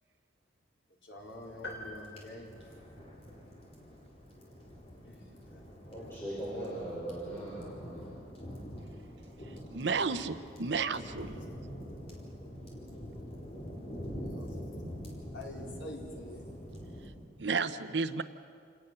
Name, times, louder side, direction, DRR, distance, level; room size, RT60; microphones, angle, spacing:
voice 1, 1.0-2.5 5.0-5.6 14.2-14.6 15.3-16.4, left 1 dB, 80° left, -1 dB, 4.3 m, -47 dB
sound 1, 1.2-17.1, equal, 35° left, 4.1 m, -45 dB
sound 2, 1.6-3.4, left 1 dB, 65° left, 3.6 m, -46 dB
voice 2, 5.9-8.1, right 1 dB, 10° left, -8 dB, 5.3 m, -39 dB
voice 3, 9.5-11.3 17.4-18.2, right 4 dB, 65° right, 11 dB, 0.8 m, -32 dB
28.0 x 18.5 x 6.8 m, 2.2 s
head